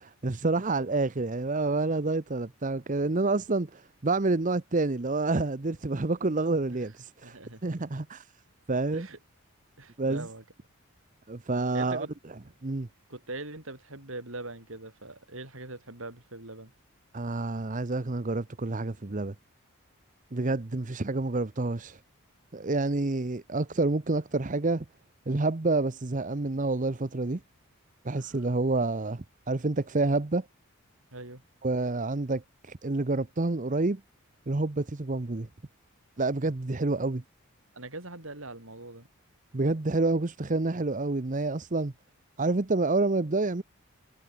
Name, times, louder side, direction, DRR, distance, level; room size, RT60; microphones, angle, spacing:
voice 1, 0.0-8.3 8.7-9.1 10.0-10.3 11.3-12.1 12.6-12.9 17.1-19.3 20.3-22.0 22.5-24.8 25.3-27.4 28.0-30.4 31.6-34.0 34.5-35.5 36.2-37.2 39.5-41.9 42.4-43.6, right 3 dB, 35° right, 0.8 m, -28 dB
voice 2, 7.2-7.9 8.9-9.2 9.8-10.4 11.7-12.1 13.1-16.7 28.1-28.4 31.1-31.4 37.7-39.1, right 2 dB, 65° right, 4.6 m, -42 dB
head